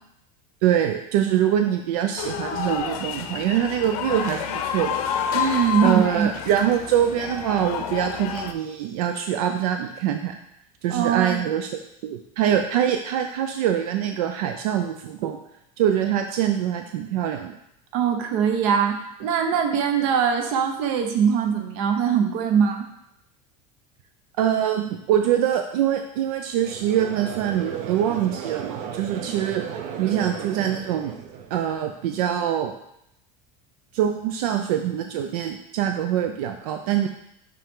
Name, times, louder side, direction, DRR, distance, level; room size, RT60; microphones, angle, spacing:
voice 1, 0.6-5.0 5.8-10.3 10.8-11.7 12.0-15.4 15.8-17.5 24.4-29.6 30.0-31.1 31.5-32.7 33.9-37.1, right 10 dB, 85° right, 5 dB, 0.5 m, -24 dB
sound 1, 2.2-8.5, left 8 dB, 85° left, 0.7 m, -29 dB
voice 2, 5.3-6.3 10.9-11.5 17.9-22.8, right 7 dB, 60° right, 6 dB, 0.9 m, -22 dB
Conversation / Crowd, 26.6-31.9, right 8 dB, 40° right, 0.5 m, -35 dB
5.6 x 5.2 x 3.7 m, 0.79 s
cardioid pair, 170°, 19 cm